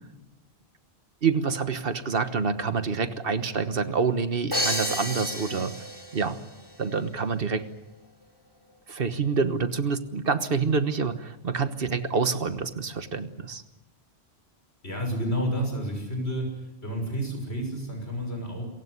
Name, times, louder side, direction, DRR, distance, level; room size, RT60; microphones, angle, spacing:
voice 1, 1.2-5.8 6.1-6.4 6.8-7.7 8.9-13.6, right 5 dB, 60° right, 11 dB, 1.5 m, -27 dB
Crash cymbal, 4.5-6.4, left 1 dB, 20° left, 4.3 m, -30 dB
voice 2, 14.8-16.5 16.8-18.6, equal, 75° left, 3 dB, 6.5 m, -30 dB
27.0 x 16.0 x 9.6 m, 1.0 s
omnidirectional pair, 1.1 m